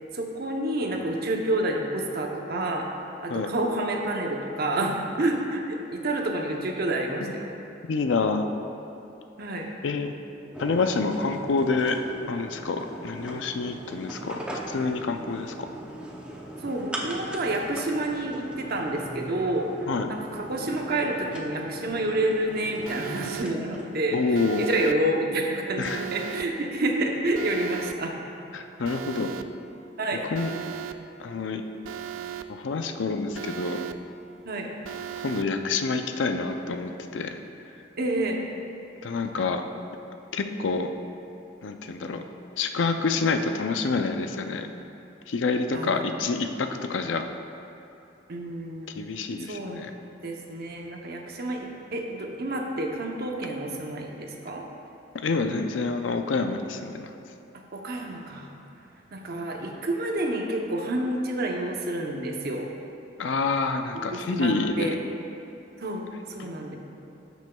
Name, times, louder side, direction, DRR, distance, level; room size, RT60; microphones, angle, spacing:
voice 1, 0.1-2.9 3.2-7.6 9.4-9.7 16.6-28.1 30.0-30.3 34.5-34.7 38.0-38.4 45.7-46.1 48.3-48.9 49.5-49.9 50.2-54.7 57.7-58.5 59.1-62.7 63.9-65.0 65.8-66.0 66.3-66.7, right 1 dB, 55° right, 1 dB, 0.8 m, -29 dB
voice 2, 7.9-8.5 9.8-10.1 10.6-12.0 12.3-14.4 14.7-15.5 19.9-20.1 24.1-24.7 25.8-26.1 28.5-29.3 30.3-30.5 31.2-31.6 32.5-33.8 35.2-37.4 39.0-39.6 40.3-40.9 41.6-42.2 42.6-44.7 45.3-47.2 48.9-49.9 55.1-57.1 63.2-64.9 66.4-66.5, left 4 dB, 70° left, 7 dB, 0.5 m, -27 dB
sound 1, 10.5-23.9, right 1 dB, 5° right, 0.6 m, -39 dB
Alarm, 22.9-23.4 24.3-24.9 25.8-26.4 27.3-27.9 28.8-29.4 30.3-30.9 31.8-32.4 33.3-33.9 34.8-35.4, right 10 dB, 85° right, 0.3 m, -36 dB
13.0 x 6.1 x 2.3 m, 2.7 s
head